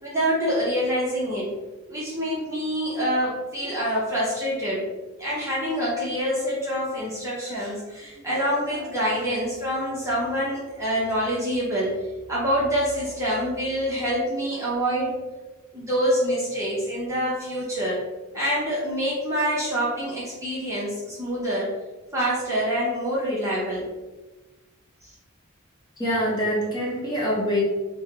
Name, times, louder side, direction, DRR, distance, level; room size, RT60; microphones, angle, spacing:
voice 1, 0.0-1.5 1.9-4.9 5.2-12.0 12.3-15.1 15.7-18.0 18.3-21.7 22.1-23.9 25.0-25.1, equal, 15° right, -8 dB, 0.7 m, -26 dB
voice 2, 26.0-27.6, equal, 20° left, -5 dB, 1.1 m, -24 dB
5.4 x 2.2 x 2.8 m, 1.2 s
head